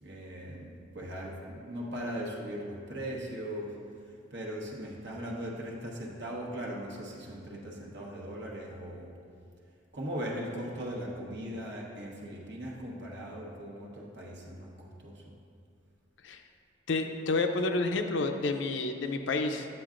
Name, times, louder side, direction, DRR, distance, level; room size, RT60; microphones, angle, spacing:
voice 1, 0.0-3.8 4.3-9.1 9.9-15.2, equal, 65° right, -3 dB, 1.2 m, -39 dB
voice 2, 16.9-19.7, left 3 dB, 75° left, 6 dB, 0.5 m, -29 dB
8.8 x 7.7 x 2.5 m, 2.3 s
head